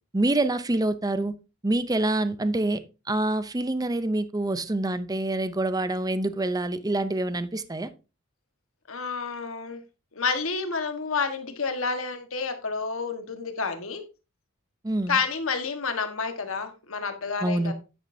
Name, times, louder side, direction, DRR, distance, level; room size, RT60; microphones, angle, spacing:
voice 1, 0.1-1.3 1.6-2.8 3.1-7.9 14.8-15.2 17.4-17.7, right 2 dB, 20° right, 13 dB, 0.6 m, -26 dB
voice 2, 8.9-9.8 10.1-14.0 15.1-17.7, left 5 dB, 75° left, 7 dB, 1.5 m, -29 dB
9.4 x 9.4 x 2.7 m, 0.29 s
head